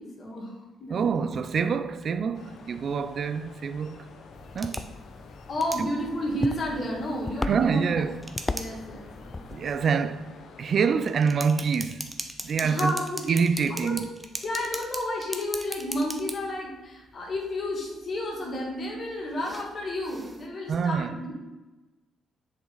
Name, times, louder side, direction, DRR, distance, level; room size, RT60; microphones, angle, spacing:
voice 1, 0.0-1.3 5.5-8.0 8.5-9.4 12.6-13.2 13.7-14.1 14.4-21.3, left 1 dB, 50° left, 2.1 m, -31 dB
voice 2, 0.9-4.0 4.5-4.8 5.8-5.9 7.4-8.3 9.5-10.3 10.6-12.1 12.4-12.9 13.3-14.1 20.7-21.2, right 6 dB, 55° right, 0.4 m, -26 dB
sound 1, 1.7-20.5, right 1 dB, 10° right, 0.7 m, -42 dB
sound 2, 2.3-10.9, left 5 dB, 70° left, 0.8 m, -49 dB
sound 3, 4.3-9.9, left 3 dB, 25° left, 0.4 m, -37 dB
6.9 x 5.3 x 3.9 m
cardioid pair, 90°, 0 cm